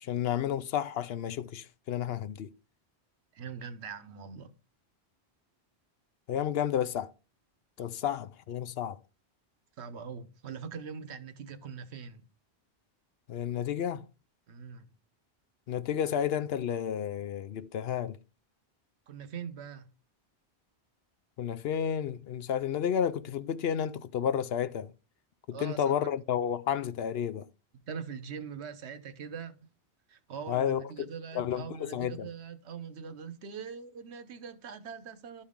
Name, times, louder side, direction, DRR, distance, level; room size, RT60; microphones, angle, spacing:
voice 1, 0.0-2.5 6.3-7.1 7.8-9.0 13.3-14.1 15.7-18.2 21.4-24.9 25.5-27.5 30.5-31.1 31.3-32.3, left 9 dB, 70° left, 0.8 m, -31 dB
voice 2, 3.3-4.5 9.8-12.2 14.5-14.9 19.1-19.9 25.5-25.9 27.9-29.7 30.1-35.4, right 6 dB, 85° right, 1.1 m, -42 dB
12.5 x 4.3 x 3.6 m
omnidirectional pair, 1.1 m